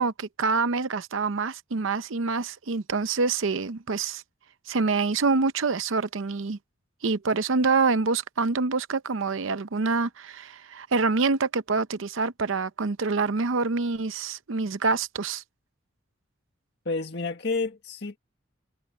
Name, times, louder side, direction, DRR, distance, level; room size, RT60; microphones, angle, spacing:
voice 1, 0.0-4.2 4.7-6.6 7.0-15.4, right 4 dB, 75° right, 0.7 m, -26 dB
voice 2, 16.9-18.2, left 3 dB, 55° left, 1.8 m, -30 dB
head